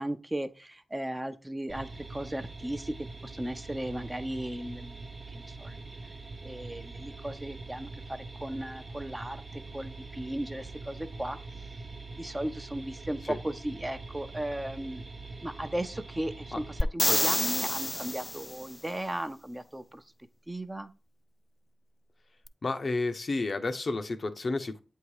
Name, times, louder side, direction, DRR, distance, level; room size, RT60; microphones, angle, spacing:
voice 1, 0.0-2.9 3.2-4.9 5.3-5.8 6.4-9.4 9.7-11.4 12.2-15.1 15.4-16.6 16.9-20.0 20.5-20.9, right 1 dB, 20° right, 8 dB, 0.7 m, -36 dB
sound 1, 1.7-16.8, right 3 dB, 50° right, 0.9 m, -43 dB
sound 2, 16.8-18.6 22.5-22.6, left 1 dB, 25° left, 0.3 m, -28 dB
voice 2, 22.6-24.8, left 3 dB, 60° left, 8 dB, 0.6 m, -31 dB
7.9 x 2.8 x 4.8 m, 0.33 s
cardioid pair, 40°, 0 cm